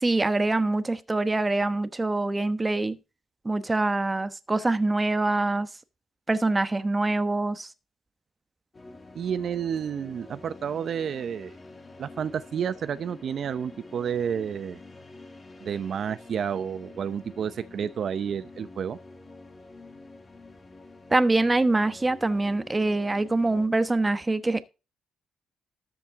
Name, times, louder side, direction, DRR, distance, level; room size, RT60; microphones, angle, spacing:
voice 1, 0.0-3.0 3.4-5.7 6.3-7.7 21.1-24.7, right 2 dB, 20° right, 1.1 m, -24 dB
sound 1, 8.7-23.7, left 2 dB, 30° left, 2.4 m, -47 dB
voice 2, 9.1-11.6 12.0-14.8 15.6-19.0, right 8 dB, 60° right, 0.7 m, -30 dB
13.0 x 7.5 x 3.6 m
cardioid pair, 90°, 0 cm